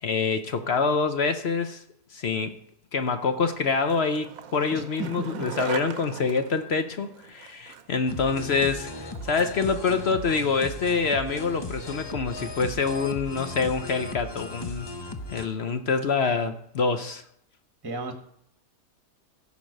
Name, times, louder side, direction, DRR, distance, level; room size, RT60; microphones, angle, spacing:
voice 1, 0.0-1.8 2.1-2.6 2.9-8.9 9.2-14.9 15.3-17.2, left 4 dB, 55° left, 9 dB, 0.8 m, -26 dB
Skateboard, 3.5-11.8, right 8 dB, 65° right, 1.1 m, -42 dB
voice 2, 4.7-5.1 5.3-5.4 17.8-18.1, right 3 dB, 15° right, 5 dB, 1.2 m, -34 dB
sound 1, 8.1-15.5, left 2 dB, 35° left, 0.4 m, -37 dB
15.5 x 5.2 x 6.4 m, 0.71 s
omnidirectional pair, 1.7 m